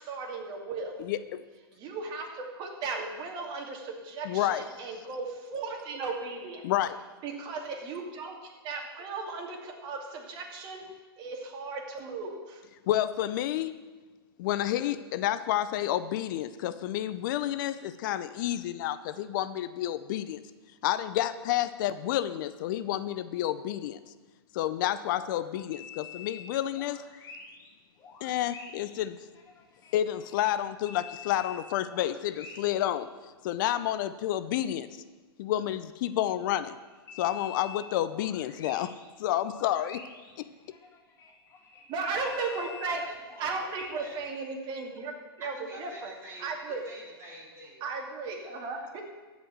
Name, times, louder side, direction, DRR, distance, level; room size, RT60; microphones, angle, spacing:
voice 1, 0.0-1.0 1.7-6.6 7.2-10.8 11.2-12.6 41.9-43.0 43.4-45.1 45.4-46.1 46.4-46.8 47.8-49.0, right 4 dB, 35° right, 1 dB, 2.5 m, -36 dB
voice 2, 1.0-1.4 4.2-4.7 6.6-7.0 12.9-13.8 14.4-20.4 20.8-24.0 24.5-27.0 28.2-29.2 29.9-33.1 33.4-34.9 35.4-36.8 37.2-38.9 39.2-40.0 40.4-40.5, left 12 dB, 55° left, 13 dB, 0.6 m, -30 dB
sound 1, 25.7-27.7 28.0-30.5 30.9-32.9 33.1-33.2 36.3-44.3, left 6 dB, 25° left, 1.8 m, -48 dB
voice 3, 42.5-44.2 45.4-47.9 48.3-48.7, right 1 dB, 20° right, -4 dB, 4.4 m, -48 dB
14.5 x 5.2 x 7.5 m, 1.3 s
hypercardioid pair, 125°, 13 cm